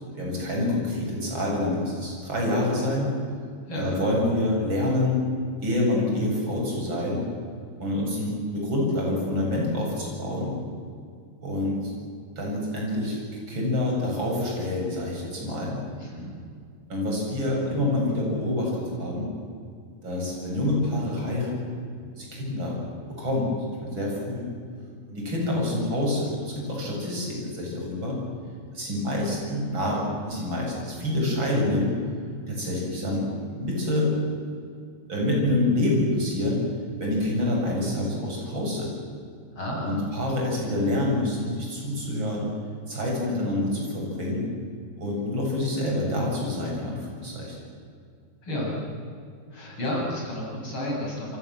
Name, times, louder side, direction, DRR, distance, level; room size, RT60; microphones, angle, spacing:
voice 1, 0.0-3.1 3.8-5.2 5.6-7.2 7.8-10.5 11.4-11.9 12.4-13.2 13.5-15.8 16.9-19.3 20.0-21.7 22.1-22.8 23.1-23.5 23.8-24.5 25.1-28.2 28.7-31.9 32.5-33.2 33.5-34.1 35.1-36.6 37.0-39.0 39.8-42.5 42.9-44.4 45.0-47.6, left 1 dB, 25° right, -2 dB, 8.4 m, -27 dB
voice 2, 3.7-4.0 16.0-16.3 39.6-39.9 48.4-48.8 49.5-51.4, left 1 dB, 30° left, -2 dB, 8.5 m, -31 dB
28.5 x 24.5 x 7.6 m, 2.3 s
omnidirectional pair, 4.9 m